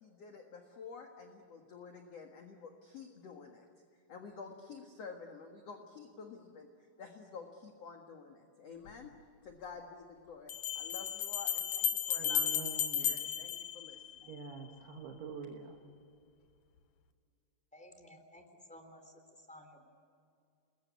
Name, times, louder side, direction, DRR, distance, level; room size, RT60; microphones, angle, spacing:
voice 1, 0.0-3.7 4.1-9.1 9.4-12.7 13.0-14.4, left 5 dB, 50° left, 3 dB, 2.3 m, -50 dB
sound 1, 8.9-9.0 10.5-14.5, left 9 dB, 65° left, 2.3 m, -34 dB
voice 2, 12.2-13.1 14.3-15.8, right 6 dB, 80° right, 1 dB, 3.6 m, -45 dB
voice 3, 17.7-19.1 19.5-19.8, left 1 dB, ahead, 5 dB, 2.9 m, -55 dB
29.5 x 21.5 x 8.4 m, 2.4 s
omnidirectional pair, 4.6 m